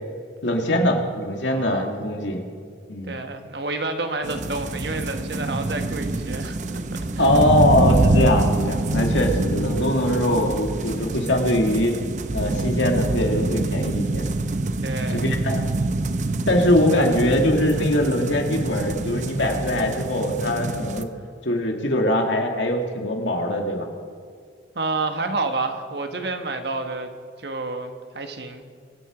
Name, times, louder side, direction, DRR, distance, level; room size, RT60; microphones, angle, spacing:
voice 1, 0.4-2.5 2.9-3.2 7.2-12.0 12.3-14.2 15.1-15.7 16.5-21.1 21.4-23.9, left 1 dB, 75° left, 2 dB, 2.0 m, -22 dB
voice 2, 1.4-2.0 3.1-6.8 7.1-7.3 14.8-15.3 24.7-27.1 27.4-28.6, right 3 dB, 60° right, 6 dB, 1.3 m, -29 dB
sound 1, 4.2-21.0, right 2 dB, 40° right, 0.6 m, -25 dB
23.5 x 9.1 x 4.9 m, 2.2 s
head